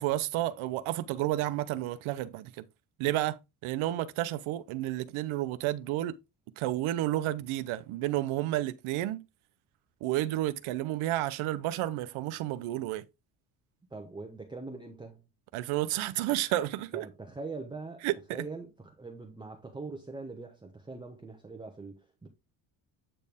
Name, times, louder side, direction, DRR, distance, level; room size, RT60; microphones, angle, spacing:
voice 1, 0.0-2.6 3.0-6.1 6.6-9.2 10.0-13.0 15.5-17.1 18.0-18.4, right 15 dB, 85° right, 0.8 m, -31 dB
voice 2, 13.9-15.3 16.9-18.1 18.3-22.3, right 3 dB, 10° right, 0.9 m, -42 dB
8.7 x 4.3 x 3.5 m
cardioid pair, 135°, 48 cm